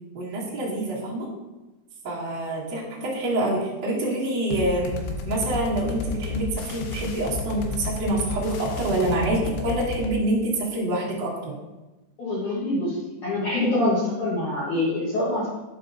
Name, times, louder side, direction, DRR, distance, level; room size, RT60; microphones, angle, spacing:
voice 1, 0.1-1.3 2.0-4.9 5.2-11.5, right 1 dB, 80° right, -8 dB, 0.9 m, -26 dB
sound 1, 4.5-10.1, left 4 dB, 90° left, 3.2 m, -32 dB
voice 2, 12.2-15.5, left 2 dB, 60° left, -8 dB, 2.2 m, -25 dB
10.5 x 5.3 x 2.7 m, 1.1 s
omnidirectional pair, 5.3 m